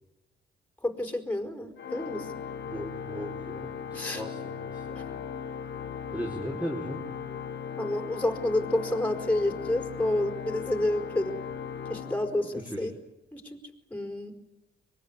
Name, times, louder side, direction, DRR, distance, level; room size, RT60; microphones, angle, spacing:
voice 1, 0.8-2.3 3.9-4.2 5.0-5.1 7.8-11.4 11.9-12.9 13.3-13.6 13.9-14.4, left 1 dB, 10° left, 6 dB, 4.6 m, -29 dB
Organ, 1.8-12.9, left 7 dB, 65° left, 2.5 m, -38 dB
voice 2, 2.7-5.0 6.1-7.0 12.5-12.9, equal, 5° right, -2 dB, 4.5 m, -37 dB
24.5 x 22.0 x 9.9 m, 0.98 s
cardioid pair, 90°, 20 cm